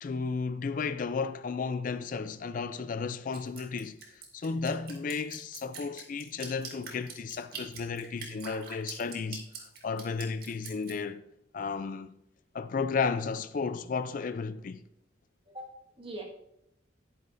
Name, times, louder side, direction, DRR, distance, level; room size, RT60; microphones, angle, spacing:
voice 1, 0.0-4.0 4.3-11.2 11.5-12.1 12.5-14.8, left 5 dB, 45° left, 0.4 m, -33 dB
Drip, 3.3-10.9, right 5 dB, 55° right, 2.1 m, -43 dB
voice 2, 15.5-16.2, right 1 dB, 30° right, 1.7 m, -43 dB
11.5 x 9.7 x 2.6 m
head